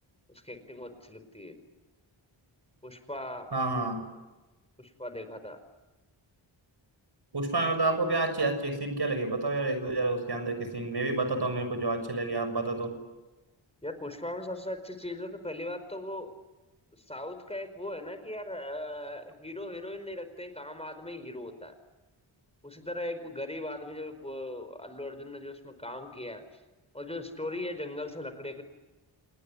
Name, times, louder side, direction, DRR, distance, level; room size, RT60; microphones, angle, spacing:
voice 1, 0.3-1.6 2.8-3.5 4.8-5.6 13.8-16.3 17.1-21.7 22.6-26.4 26.9-28.6, left 1 dB, 10° left, 9 dB, 4.9 m, -39 dB
voice 2, 3.5-4.0 7.3-13.0, right 2 dB, 55° right, 9 dB, 6.7 m, -29 dB
28.5 x 20.0 x 9.9 m, 1.1 s
cardioid pair, 55°, 49 cm